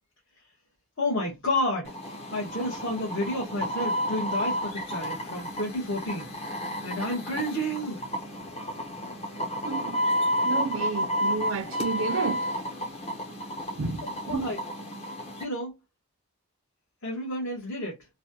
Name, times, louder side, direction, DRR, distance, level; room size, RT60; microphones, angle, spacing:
voice 1, 1.0-1.9 2.3-6.3 6.8-8.0 14.3-14.6 15.4-15.7 17.0-18.0, left 1 dB, 60° left, 1.3 m, -30 dB
sound 1, 1.8-15.4, equal, 30° left, 0.8 m, -31 dB
voice 2, 9.6-10.0 10.4-12.4 13.8-14.4, right 4 dB, 65° right, 0.5 m, -31 dB
3.2 x 2.3 x 2.7 m
head